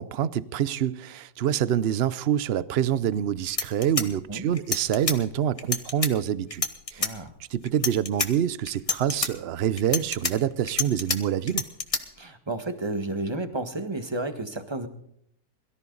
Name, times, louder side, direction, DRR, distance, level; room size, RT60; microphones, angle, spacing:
voice 1, 0.0-6.6 6.9-7.0 7.5-11.7, right 10 dB, 60° right, 0.6 m, -26 dB
sound 1, 3.1-3.2 3.5-5.2 5.6-6.1 6.5-7.1 7.7-8.3 8.7-9.3 9.8-11.2 11.5-12.0, left 3 dB, 20° left, 1.3 m, -27 dB
voice 2, 7.0-7.3 12.2-14.9, right 2 dB, 15° right, 1.4 m, -31 dB
22.5 x 14.0 x 4.0 m
omnidirectional pair, 1.8 m